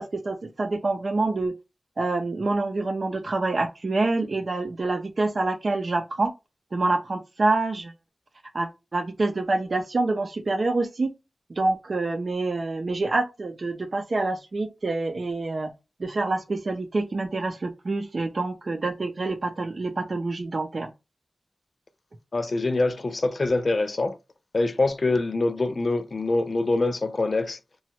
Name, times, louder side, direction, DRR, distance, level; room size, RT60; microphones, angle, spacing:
voice 1, 0.0-1.5 2.0-6.3 6.7-7.9 8.5-11.1 11.5-15.7 16.0-20.9, right 2 dB, 65° right, 0.6 m, -26 dB
voice 2, 22.3-24.2 24.5-27.6, left 2 dB, 55° left, 0.4 m, -24 dB
3.0 x 2.3 x 2.8 m
wide cardioid pair, 60°, 0 cm